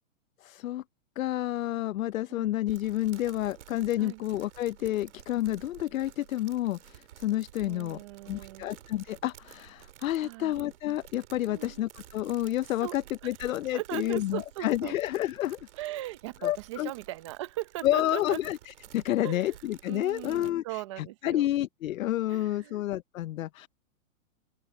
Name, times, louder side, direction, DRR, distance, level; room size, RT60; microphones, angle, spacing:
voice 1, 0.4-0.8 1.2-8.0 8.3-15.6 16.4-16.9 17.8-23.7, left 14 dB, 75° left, 0.6 m, -30 dB
sound 1, 2.7-20.5, right 12 dB, 60° right, 2.8 m, -52 dB
voice 2, 7.6-8.7 10.2-10.6 11.4-11.8 12.8-13.0 13.2-13.3 13.7-14.9 15.7-18.4 19.2-19.5 19.9-21.5 22.3-22.8, right 16 dB, 20° right, 0.7 m, -39 dB
open air
hypercardioid pair, 170°, 41 cm